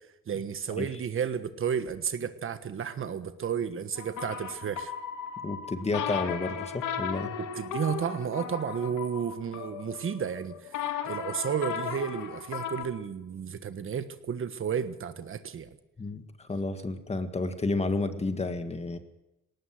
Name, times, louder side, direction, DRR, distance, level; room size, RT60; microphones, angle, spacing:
voice 1, 0.3-4.9 7.4-10.7 11.0-15.7, right 7 dB, 45° right, 11 dB, 1.3 m, -32 dB
sound 1, 4.0-12.8, left 7 dB, 85° left, 2.4 m, -36 dB
voice 2, 5.4-7.3 16.0-19.0, left 3 dB, 20° left, 9 dB, 1.9 m, -31 dB
20.0 x 19.0 x 7.8 m, 0.94 s
cardioid pair, 125°, 29 cm